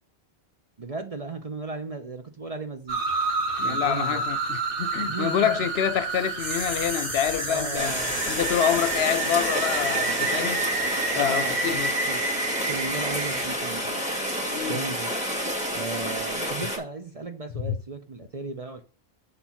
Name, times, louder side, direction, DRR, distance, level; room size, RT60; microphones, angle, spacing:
voice 1, 0.8-3.0 3.6-4.2 5.0-5.6 7.5-8.2 11.1-12.2 12.7-14.0 14.7-15.1 15.7-18.8, right 3 dB, 40° right, 0.7 m, -35 dB
sound 1, 2.9-13.5, right 3 dB, 55° right, 1.3 m, -30 dB
voice 2, 3.6-8.0 8.3-10.6 11.2-11.9 14.4-14.8 17.6-17.7, left 10 dB, 75° left, 0.8 m, -27 dB
sound 2, 6.1-11.7 12.0-12.1, right 1 dB, 75° right, 2.4 m, -36 dB
Rain, 7.7-16.8, equal, 5° right, 2.1 m, -29 dB
6.8 x 4.5 x 5.6 m
omnidirectional pair, 1.1 m